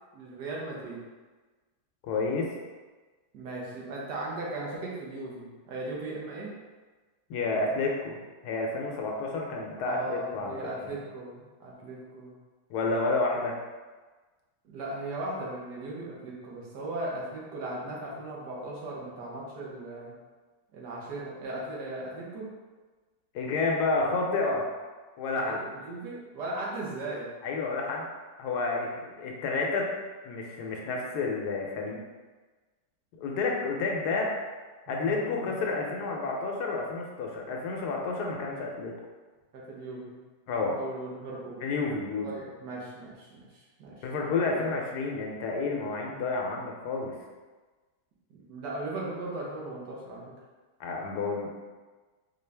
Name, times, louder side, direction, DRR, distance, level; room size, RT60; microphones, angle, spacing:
voice 1, 0.1-1.0 3.3-6.6 9.8-12.3 14.6-20.1 20.7-22.5 25.4-27.3 34.9-35.5 39.5-40.2 40.7-41.6 42.2-44.1 44.5-44.7 48.5-50.3, right 2 dB, 80° right, -4 dB, 1.5 m, -37 dB
voice 2, 2.1-2.5 7.3-10.6 10.8-11.0 12.7-13.6 23.3-24.7 25.2-25.6 27.4-28.1 28.4-29.9 30.2-32.0 33.1-34.3 34.9-38.9 40.5-40.8 41.6-42.3 44.0-47.2 50.8-51.5, left 3 dB, 75° left, 0 dB, 1.1 m, -30 dB
4.3 x 2.4 x 3.3 m, 1.3 s
omnidirectional pair, 1.8 m